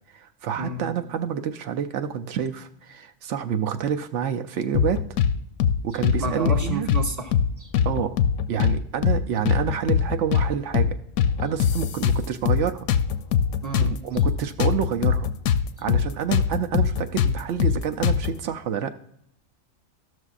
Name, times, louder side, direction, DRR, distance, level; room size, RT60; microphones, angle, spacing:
voice 1, 0.1-5.0 5.8-6.9 7.8-8.2 8.5-11.0 11.4-12.8 13.8-15.3 15.8-18.9, right 8 dB, 70° right, 7 dB, 0.9 m, -28 dB
sound 1, 4.7-5.3 5.6-5.8 6.0-7.0 7.3-7.5 7.7-8.8 9.0-9.2 9.5-10.5 10.7-10.9 11.2-12.6 12.9-15.6 15.9-16.0 16.3-18.3, left 8 dB, 70° left, 0.9 m, -21 dB
voice 2, 6.2-7.7 13.6-14.0, right 3 dB, 15° right, 2 dB, 0.8 m, -31 dB
14.0 x 6.3 x 2.4 m, 0.71 s
omnidirectional pair, 1.4 m